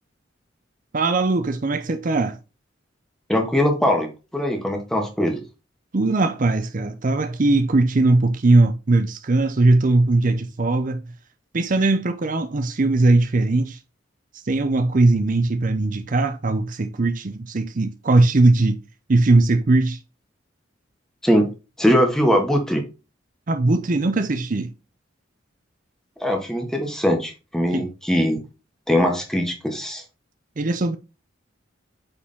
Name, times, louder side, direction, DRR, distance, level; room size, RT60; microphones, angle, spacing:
voice 1, 0.9-2.4 5.9-11.0 11.5-13.8 14.3-18.8 19.1-20.0 23.5-24.7 27.7-27.9 30.6-31.0, right 2 dB, 45° right, 0.6 m, -19 dB
voice 2, 3.3-5.4 21.2-21.5 21.8-22.8 26.2-28.4 28.9-30.0, equal, 5° left, 1.7 m, -21 dB
8.6 x 4.9 x 3.5 m
head